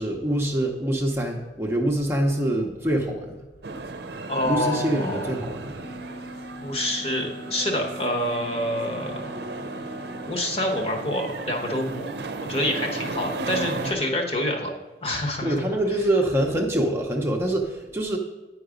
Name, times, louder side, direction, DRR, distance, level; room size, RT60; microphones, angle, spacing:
voice 1, 0.0-3.3 4.4-5.8 15.4-18.2, right 1 dB, 15° right, 0 dB, 0.7 m, -25 dB
sound 1, 3.6-13.9, right 3 dB, 65° right, 0.6 m, -35 dB
voice 2, 4.3-5.3 6.6-9.3 10.3-12.1 12.5-14.7 15.0-15.6, left 1 dB, 35° left, 1 dB, 1.1 m, -27 dB
sound 2, 5.8-10.4, equal, 80° left, 1.4 m, -41 dB
9.2 x 4.7 x 5.1 m, 1.2 s
head